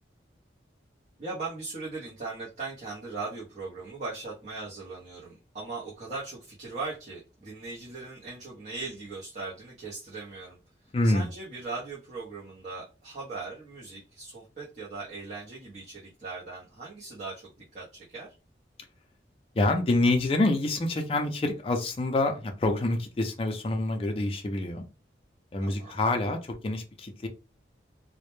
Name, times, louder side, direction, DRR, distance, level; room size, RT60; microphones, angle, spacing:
voice 1, 1.2-10.6 11.0-18.3 25.6-25.9, right 3 dB, 40° right, -6 dB, 0.6 m, -39 dB
voice 2, 10.9-11.3 19.5-24.8 25.5-27.3, left 2 dB, 30° left, 4 dB, 0.4 m, -27 dB
2.1 x 2.0 x 3.0 m, 0.30 s
head